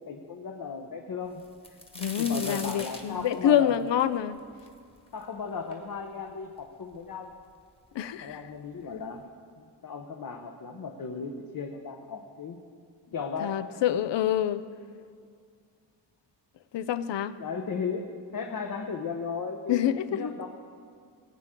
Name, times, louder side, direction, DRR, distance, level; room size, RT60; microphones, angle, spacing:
voice 1, 0.0-1.8 2.2-3.8 5.1-7.3 8.2-9.2 9.6-12.6 13.1-13.6 17.4-18.1 18.3-19.8 20.1-20.5, left 5 dB, 50° left, 2 dB, 0.9 m, -36 dB
sound 1, 1.4-5.2 5.7-5.8 6.6-6.7 6.9-7.6 8.5-8.6 9.0-9.2, left 1 dB, 15° left, 1.3 m, -41 dB
voice 2, 2.0-4.4 7.9-8.4 13.4-14.6 16.7-17.4 19.7-20.3, left 10 dB, 75° left, 14 dB, 0.6 m, -26 dB
20.0 x 9.0 x 3.7 m, 2.2 s
wide cardioid pair, 120°, 44 cm